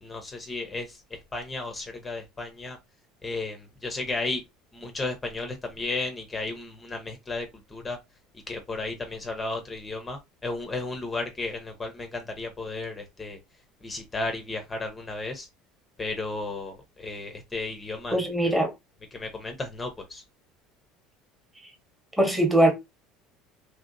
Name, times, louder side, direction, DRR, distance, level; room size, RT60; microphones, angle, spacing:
voice 1, 0.0-2.8 3.2-4.4 4.7-8.0 8.5-13.4 13.8-15.5 16.0-18.3 19.1-20.2, left 3 dB, 15° left, 0.6 m, -34 dB
voice 2, 18.1-18.7 22.2-22.7, right 1 dB, 5° right, 0.9 m, -21 dB
2.9 x 2.8 x 2.5 m
cardioid pair, 135°, 0 cm